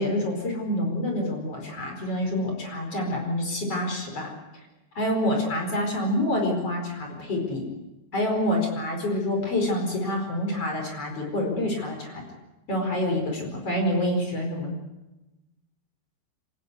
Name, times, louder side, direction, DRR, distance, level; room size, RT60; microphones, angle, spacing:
voice 1, 0.0-4.3 4.9-7.7 8.1-12.2 12.7-14.8, left 1 dB, 30° left, 1 dB, 5.2 m, -27 dB
26.0 x 19.0 x 8.2 m, 1.0 s
omnidirectional pair, 5.9 m